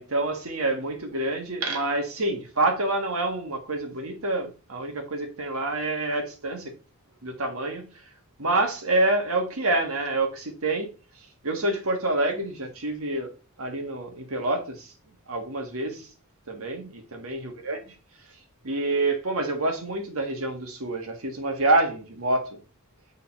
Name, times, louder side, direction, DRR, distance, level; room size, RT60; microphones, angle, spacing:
voice 1, 0.0-6.7 7.2-7.9 8.4-10.9 11.4-13.3 13.6-14.9 15.3-16.1 16.5-17.8 18.6-22.6, right 2 dB, 85° right, 1.6 m, -27 dB
7.2 x 3.8 x 4.3 m
head